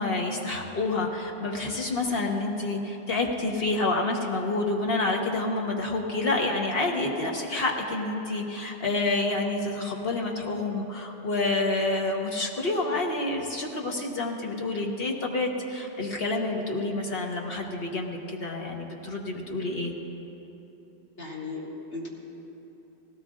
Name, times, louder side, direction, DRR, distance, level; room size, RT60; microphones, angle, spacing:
voice 1, 0.0-19.9, left 2 dB, 60° left, 0 dB, 1.5 m, -28 dB
voice 2, 21.2-22.1, left 3 dB, 85° left, -5 dB, 2.6 m, -36 dB
19.0 x 17.5 x 2.5 m, 3.0 s
omnidirectional pair, 1.1 m